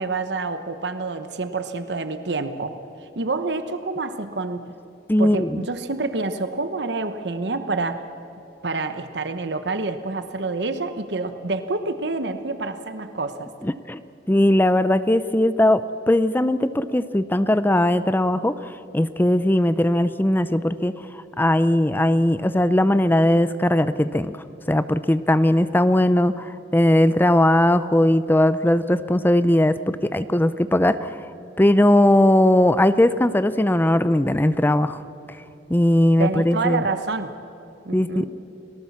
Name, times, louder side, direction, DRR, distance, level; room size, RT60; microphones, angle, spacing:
voice 1, 0.0-2.7 3.2-4.7 5.2-8.1 8.6-13.5 36.2-37.3 37.8-38.3, right 3 dB, 70° right, 9 dB, 1.0 m, -27 dB
voice 2, 5.1-5.6 13.6-14.0 14.3-20.9 21.4-24.4 24.7-31.1 31.6-35.0 35.7-36.8 37.9-38.3, left 1 dB, 10° left, 13 dB, 0.5 m, -19 dB
30.0 x 19.0 x 7.2 m, 2.9 s
head